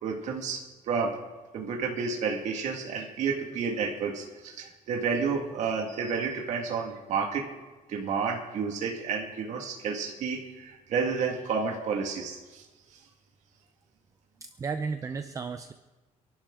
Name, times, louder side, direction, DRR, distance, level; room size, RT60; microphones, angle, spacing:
voice 1, 0.0-0.6 0.9-1.2 1.5-7.5 7.9-12.7, right 5 dB, 60° right, 1 dB, 1.9 m, -30 dB
voice 2, 14.4-15.7, right 5 dB, 25° right, 9 dB, 0.6 m, -34 dB
29.0 x 11.5 x 3.8 m, 1.2 s
cardioid pair, 145°, 13 cm